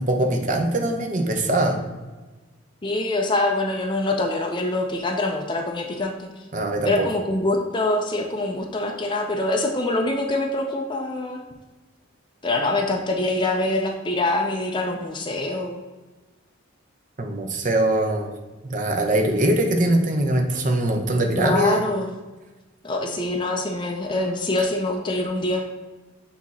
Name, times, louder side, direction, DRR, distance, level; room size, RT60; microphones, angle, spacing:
voice 1, 0.0-1.8 6.5-7.1 17.2-18.3 18.6-21.8, right 1 dB, 40° right, 3 dB, 0.7 m, -22 dB
voice 2, 2.8-6.3 6.8-11.4 12.4-15.8 21.4-22.1 22.8-25.6, left 2 dB, 20° left, 1 dB, 0.5 m, -24 dB
8.5 x 2.9 x 4.1 m, 1.2 s
head